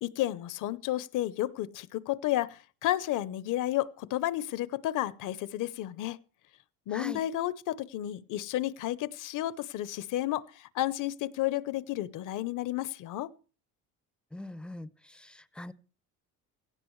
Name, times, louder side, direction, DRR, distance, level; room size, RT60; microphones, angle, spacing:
voice 1, 0.0-6.2 6.9-13.3, left 14 dB, 65° left, 0.8 m, -32 dB
voice 2, 14.3-15.7, left 1 dB, 5° left, 0.6 m, -42 dB
17.5 x 16.0 x 3.2 m
cardioid pair, 140°, 34 cm